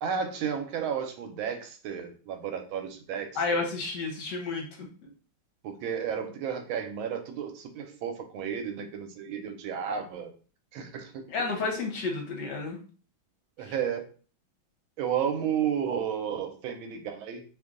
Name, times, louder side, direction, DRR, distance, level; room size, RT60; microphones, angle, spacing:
voice 1, 0.0-3.7 5.6-10.3 10.7-11.2 13.6-14.0 15.0-17.4, right 8 dB, 85° right, 6 dB, 1.4 m, -32 dB
voice 2, 3.3-4.9 11.3-12.8 13.6-13.7, left 3 dB, 65° left, 1 dB, 1.5 m, -31 dB
3.3 x 2.6 x 3.7 m, 0.38 s
omnidirectional pair, 2.2 m